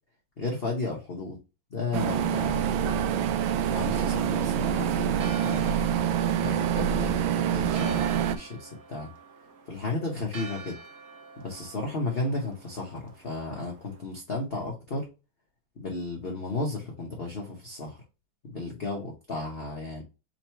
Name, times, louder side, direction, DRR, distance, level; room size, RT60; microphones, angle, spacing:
voice 1, 0.4-1.4 1.7-3.1 3.7-5.8 6.4-9.1 9.7-10.8 11.4-15.1 15.8-18.0 18.5-20.0, left 2 dB, 45° left, -1 dB, 0.8 m, -34 dB
sound 1, 1.9-8.4, right 9 dB, 80° right, 1.3 m, -26 dB
Church bell, 5.1-14.0, right 4 dB, 55° right, 1.1 m, -47 dB
3.9 x 2.9 x 4.5 m, 0.28 s
omnidirectional pair, 2.2 m